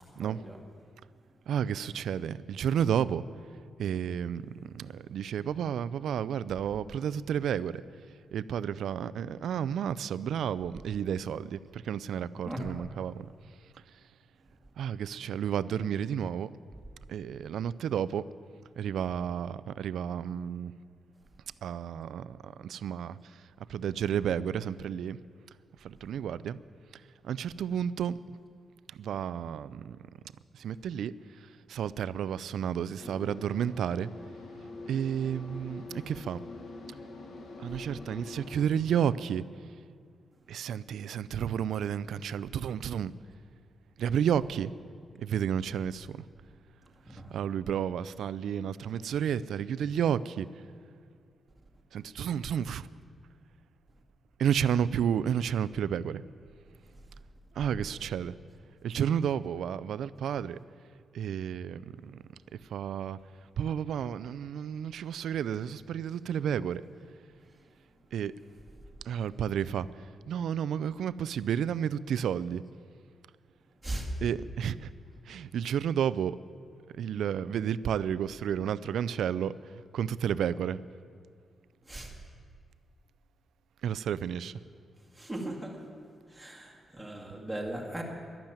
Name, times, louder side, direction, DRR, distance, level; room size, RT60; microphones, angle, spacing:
voice 1, 0.2-0.6 12.4-12.6 47.1-47.3 73.8-74.1 81.9-82.1 85.1-85.8 86.3-88.0, right 1 dB, 5° right, 2.1 m, -38 dB
voice 2, 1.5-3.2 3.8-7.8 8.3-13.3 14.8-16.5 17.1-18.3 18.8-20.7 21.6-25.2 25.8-26.6 26.9-28.2 28.9-30.0 30.5-34.1 34.9-36.4 37.6-39.4 40.5-43.1 44.0-44.7 45.2-46.2 47.3-50.5 51.9-52.9 54.4-56.2 57.6-58.4 58.8-60.6 61.1-62.2 62.5-63.2 63.6-66.8 68.1-68.3 69.0-69.9 70.3-72.6 74.2-74.9 75.3-76.4 76.9-79.6 79.9-80.8 83.8-84.6, right 8 dB, 80° right, 0.4 m, -31 dB
sound 1, 33.0-38.7, left 3 dB, 55° left, 1.6 m, -45 dB
12.0 x 11.5 x 8.9 m
wide cardioid pair, 145°, 0 cm